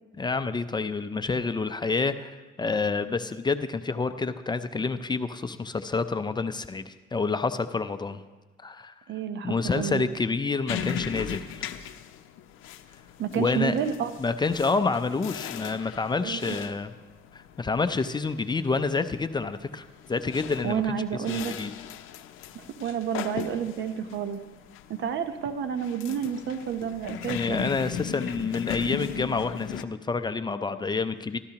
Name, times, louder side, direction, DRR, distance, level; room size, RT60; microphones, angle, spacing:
voice 1, 0.2-8.2 8.6-8.9 9.4-11.7 13.4-13.8 14.2-16.9 17.3-20.8 21.3-21.7 27.3-31.4, left 4 dB, 20° left, 10 dB, 0.5 m, -28 dB
voice 2, 9.1-10.0 13.2-14.1 16.2-16.6 20.6-21.6 22.5-24.4 24.9-27.7, right 8 dB, 70° right, 9 dB, 0.8 m, -30 dB
sound 1, 10.7-29.8, left 9 dB, 85° left, 0.5 m, -38 dB
13.0 x 12.5 x 2.9 m, 1.2 s
cardioid pair, 90°, 20 cm